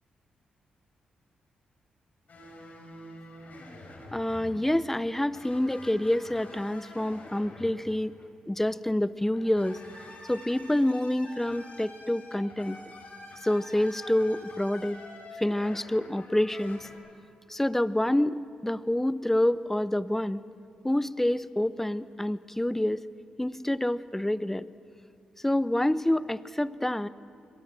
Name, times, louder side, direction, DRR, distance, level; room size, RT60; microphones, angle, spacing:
sound 1, 2.3-8.3 9.3-16.9, left 2 dB, 55° left, 6.3 m, -47 dB
voice 1, 4.1-8.1 8.5-9.8 10.3-12.8 13.4-15.0 15.4-16.9 17.5-20.4 20.8-23.0 23.4-24.7 25.4-27.1, left 1 dB, 10° left, 16 dB, 0.9 m, -27 dB
29.0 x 23.0 x 7.6 m, 2.4 s
supercardioid pair, 50°, 3 cm